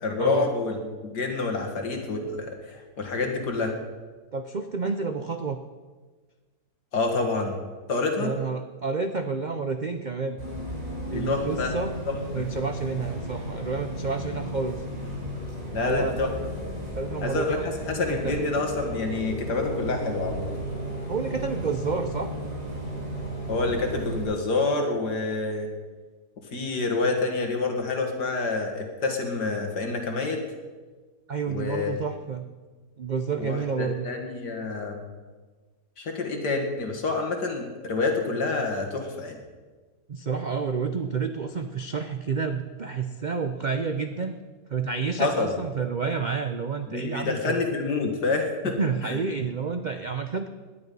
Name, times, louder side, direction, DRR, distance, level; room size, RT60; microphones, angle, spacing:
voice 1, 0.0-3.8 6.9-7.6 7.9-8.3 11.1-11.7 12.1-12.5 15.7-16.3 17.2-20.6 23.5-25.7 26.5-30.4 31.5-32.0 33.4-35.0 36.0-39.4 45.2-45.5 46.9-48.8 49.0-49.2, left 3 dB, 80° left, 3 dB, 2.5 m, -27 dB
voice 2, 4.3-5.6 8.2-10.4 11.1-11.9 12.3-14.8 15.8-16.2 17.0-18.4 21.1-22.3 31.3-32.5 33.0-34.1 40.1-44.4 44.7-47.6 48.8-50.5, right 5 dB, 70° right, 8 dB, 0.4 m, -29 dB
Bus, 10.4-24.2, equal, 50° right, 6.2 m, -34 dB
18.0 x 10.5 x 5.4 m, 1.4 s
omnidirectional pair, 1.8 m